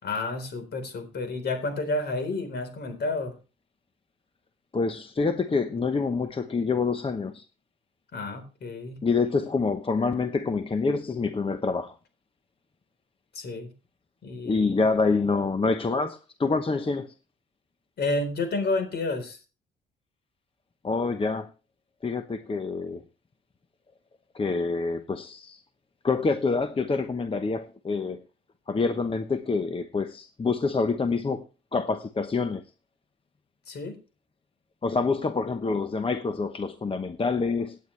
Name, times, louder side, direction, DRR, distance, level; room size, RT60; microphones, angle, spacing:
voice 1, 0.0-3.4 8.1-9.0 13.3-13.7 14.2-14.8 18.0-19.4 33.7-34.0, left 2 dB, 55° left, 4.1 m, -30 dB
voice 2, 4.7-7.4 9.0-11.9 14.4-17.1 20.8-21.5 22.0-23.0 24.3-25.6 26.0-28.2 28.7-31.4 31.7-32.6 34.8-37.8, left 4 dB, 25° left, 0.9 m, -26 dB
17.0 x 9.4 x 3.3 m
cardioid pair, 90°, 20 cm